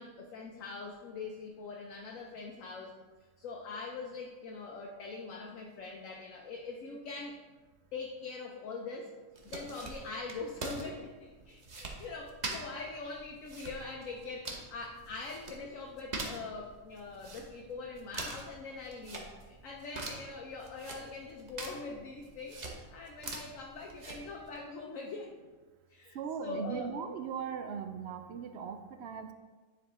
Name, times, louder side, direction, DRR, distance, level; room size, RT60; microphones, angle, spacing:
voice 1, 0.0-2.9 3.4-7.4 7.9-9.1 9.4-25.3 25.9-26.9, left 3 dB, 70° left, 0 dB, 1.1 m, -43 dB
sound 1, 9.3-24.6, right 2 dB, 35° right, 1.0 m, -45 dB
voice 2, 26.2-29.3, right 6 dB, 65° right, 8 dB, 0.7 m, -39 dB
10.0 x 4.8 x 3.6 m, 1.3 s
omnidirectional pair, 1.4 m